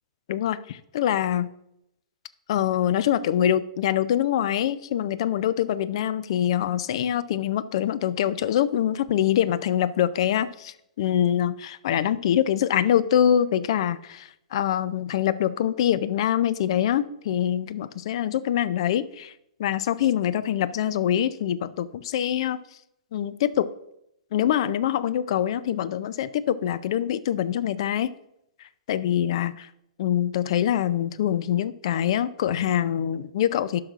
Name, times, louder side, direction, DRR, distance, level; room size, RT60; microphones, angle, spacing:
voice 1, 0.3-1.5 2.5-19.3 19.6-22.6 23.1-23.7 24.3-28.1 28.6-29.7 30.0-33.8, left 10 dB, 55° left, 0.5 m, -24 dB
12.0 x 5.8 x 2.5 m
hypercardioid pair, 115°, 3 cm